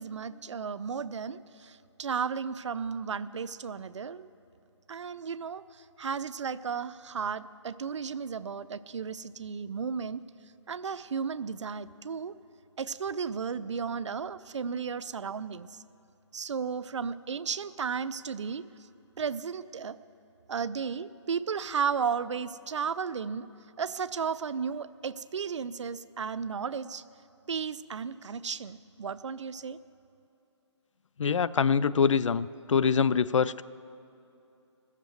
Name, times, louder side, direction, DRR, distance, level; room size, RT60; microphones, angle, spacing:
voice 1, 0.0-4.3 4.9-5.6 6.0-10.2 10.7-12.3 12.8-15.7 16.3-18.6 19.2-20.0 20.5-23.5 23.8-27.0 27.5-29.8, right 6 dB, 75° right, 16 dB, 0.5 m, -34 dB
voice 2, 31.2-33.6, left 6 dB, 85° left, 17 dB, 0.4 m, -24 dB
16.0 x 7.4 x 7.8 m, 2.8 s
hypercardioid pair, 160°, 16 cm